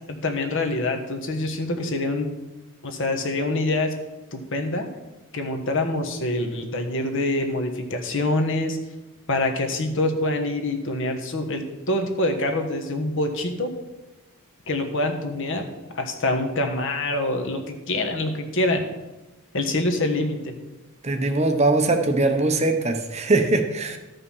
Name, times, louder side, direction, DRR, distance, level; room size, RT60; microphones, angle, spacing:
voice 1, 0.1-2.3 2.8-3.9 4.3-4.9 5.3-8.8 9.3-13.7 14.7-15.6 15.9-18.8 19.5-20.4, left 2 dB, 55° left, 5 dB, 1.3 m, -25 dB
voice 2, 21.0-24.0, right 2 dB, 30° right, 5 dB, 0.9 m, -21 dB
13.0 x 5.5 x 5.6 m, 1.1 s
head